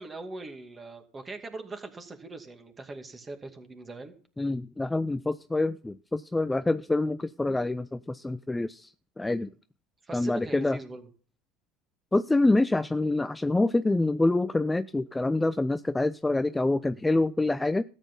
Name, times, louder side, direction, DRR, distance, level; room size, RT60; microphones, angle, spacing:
voice 1, 0.0-4.1 10.0-11.1, right 2 dB, 25° right, 2.3 m, -41 dB
voice 2, 4.4-8.9 9.2-9.5 10.1-10.8 12.1-17.8, left 2 dB, 10° left, 0.4 m, -26 dB
13.5 x 8.2 x 5.4 m
hypercardioid pair, 85°, 0 cm